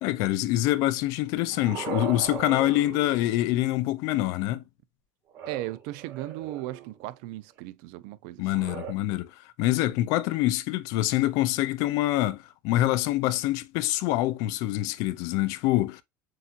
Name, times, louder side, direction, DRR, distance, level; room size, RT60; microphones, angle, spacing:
voice 1, 0.0-4.6 8.4-16.0, left 16 dB, 70° left, 0.5 m, -25 dB
sound 1, 1.1-3.8 5.3-7.0 8.4-8.9, right 7 dB, 50° right, 2.3 m, -39 dB
voice 2, 5.5-8.4, right 16 dB, 75° right, 0.5 m, -36 dB
7.6 x 2.8 x 2.5 m
cardioid pair, 130°, 6 cm